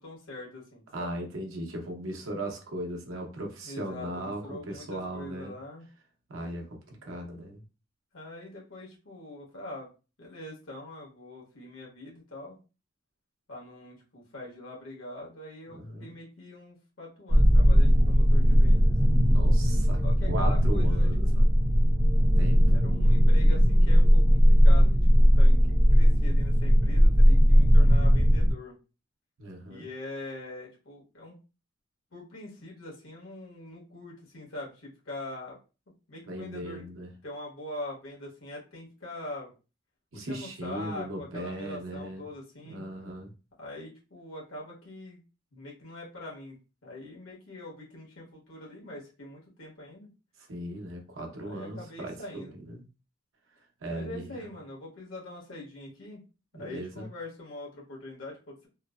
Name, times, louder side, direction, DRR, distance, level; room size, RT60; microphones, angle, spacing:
voice 1, 0.0-1.2 3.6-5.9 8.1-9.9 10.2-12.6 13.5-18.9 20.0-21.4 22.7-25.6 25.9-28.7 29.7-31.3 32.1-35.6 36.1-36.8 37.2-39.5 40.1-42.8 43.6-45.2 45.5-46.6 46.8-50.1 51.4-52.6 53.9-56.2 56.6-58.7, left 1 dB, 85° left, -3 dB, 1.2 m, -43 dB
voice 2, 0.9-5.5 6.3-7.6 15.7-16.1 19.3-21.5 22.4-22.6 29.4-29.9 36.2-37.1 40.1-42.2 42.6-43.3 50.4-52.8 53.8-54.5 56.5-57.1, right 1 dB, 90° right, 1 dB, 0.8 m, -38 dB
sound 1, 17.3-28.5, equal, 20° right, 0.9 m, -19 dB
3.1 x 2.0 x 2.3 m, 0.32 s
head